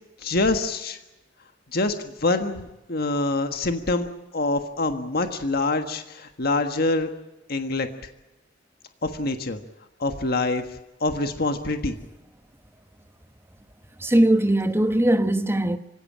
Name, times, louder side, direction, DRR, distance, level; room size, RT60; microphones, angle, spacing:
voice 1, 0.2-1.0 1.7-4.1 4.3-7.1 7.5-7.9 9.0-9.6 10.0-10.6 11.0-12.0, left 2 dB, 55° left, 1.5 m, -25 dB
voice 2, 14.0-15.8, right 1 dB, 15° right, 1.2 m, -20 dB
26.0 x 16.5 x 8.7 m
head